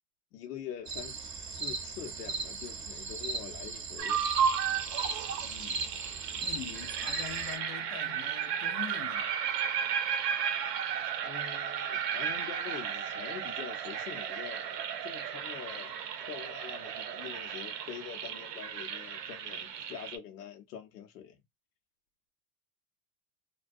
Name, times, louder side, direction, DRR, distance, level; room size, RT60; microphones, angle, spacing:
voice 1, 0.3-4.2 11.2-21.4, left 9 dB, 85° left, 0.9 m, -45 dB
sound 1, 0.9-7.6, right 4 dB, 25° right, 0.7 m, -38 dB
sound 2, 4.0-20.2, right 8 dB, 85° right, 0.7 m, -34 dB
voice 2, 5.4-5.8 6.4-9.3, left 9 dB, 55° left, 0.6 m, -44 dB
2.2 x 2.2 x 2.5 m
hypercardioid pair, 105°, 47 cm